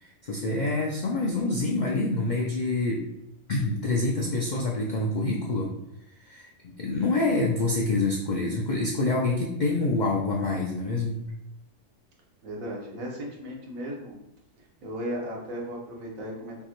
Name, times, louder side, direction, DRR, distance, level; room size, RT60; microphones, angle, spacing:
voice 1, 0.0-3.0 3.5-5.7 6.2-11.2, left 2 dB, 70° left, -1 dB, 0.4 m, -26 dB
voice 2, 12.4-14.2 14.6-16.6, equal, 90° right, -2 dB, 1.4 m, -36 dB
5.3 x 2.1 x 3.0 m, 0.86 s
omnidirectional pair, 1.4 m